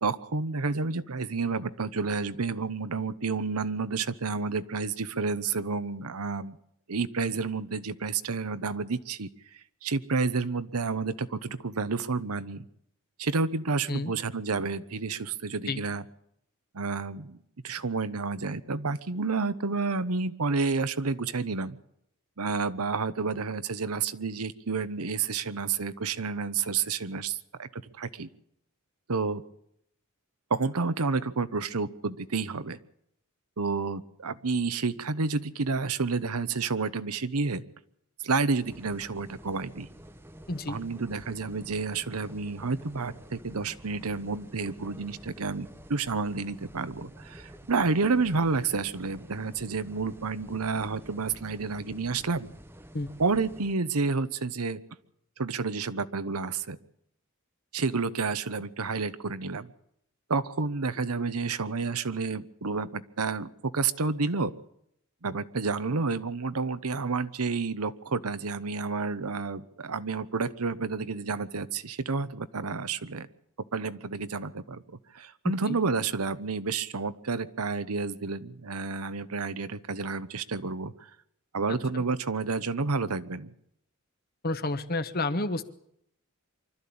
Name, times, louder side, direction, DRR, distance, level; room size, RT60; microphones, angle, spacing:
voice 1, 0.0-6.6 6.9-9.3 9.8-12.7 13.2-16.0 16.7-17.4 17.6-21.8 22.4-28.3 29.1-29.4 30.5-32.8 33.6-37.6 38.2-39.9 40.7-52.5 53.2-54.8 55.4-56.8 57.7-59.7 60.3-64.5 65.2-73.3 73.7-74.8 75.1-81.1 81.5-83.5, right 4 dB, 85° right, 13 dB, 1.0 m, -30 dB
sound 1, 38.6-53.7, equal, 10° right, 0.9 m, -49 dB
voice 2, 40.5-40.8 52.9-53.1 75.4-75.8 81.9-82.0 84.4-85.6, left 2 dB, 45° left, 11 dB, 1.2 m, -30 dB
24.5 x 13.0 x 8.6 m, 0.73 s
head